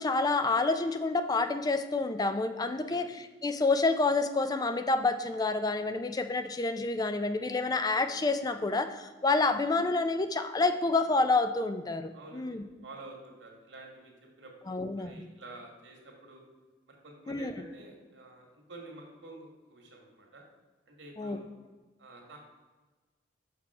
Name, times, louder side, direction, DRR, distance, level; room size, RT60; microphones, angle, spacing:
voice 1, 0.0-3.1 3.4-12.6 14.7-15.3 17.3-17.5 21.2-21.4, left 3 dB, 20° left, 9 dB, 0.4 m, -28 dB
voice 2, 2.7-3.1 12.1-16.4 16.9-20.4 20.9-21.5 22.0-22.4, right 2 dB, 90° right, 1 dB, 1.9 m, -50 dB
6.2 x 5.9 x 4.8 m, 1.3 s
head